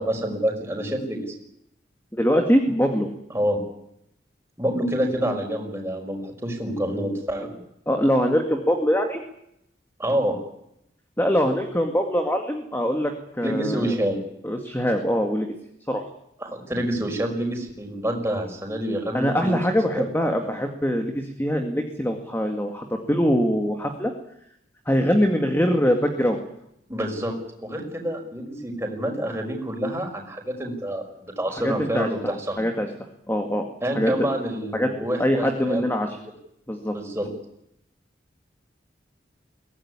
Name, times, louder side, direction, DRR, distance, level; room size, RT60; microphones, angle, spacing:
voice 1, 0.0-1.3 3.3-3.6 4.6-7.6 10.0-10.4 13.4-14.2 16.4-19.6 19.9-20.1 26.9-27.3 27.6-32.6 33.8-35.8 36.9-37.3, right 1 dB, 15° right, 1 dB, 5.5 m, -27 dB
voice 2, 2.1-3.1 7.9-9.2 11.2-13.9 14.4-15.5 15.9-16.0 19.1-24.1 24.9-26.4 31.5-32.9 33.3-33.7 33.9-34.1 34.7-36.2 36.7-36.9, equal, 10° left, 4 dB, 2.1 m, -23 dB
23.0 x 18.0 x 9.8 m, 0.78 s
head